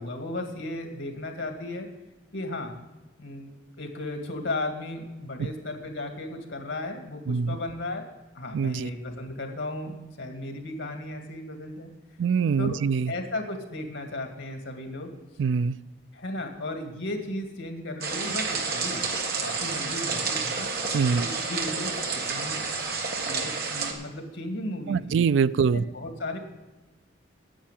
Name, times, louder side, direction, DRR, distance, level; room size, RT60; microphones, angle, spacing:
voice 1, 0.0-1.9 2.3-2.8 3.2-3.5 3.8-8.1 8.3-11.9 12.6-12.8 13.1-15.1 16.1-19.1 19.4-20.7 21.1-22.6 23.2-25.2 25.7-26.4, left 1 dB, 90° left, 4 dB, 2.1 m, -35 dB
voice 2, 7.3-7.6 8.5-8.9 12.2-13.1 15.4-15.8 20.9-21.3 24.9-25.8, right 6 dB, 80° right, 17 dB, 0.4 m, -24 dB
sound 1, 18.0-23.9, right 4 dB, 55° right, 1.6 m, -30 dB
10.0 x 8.3 x 8.8 m, 1.1 s
head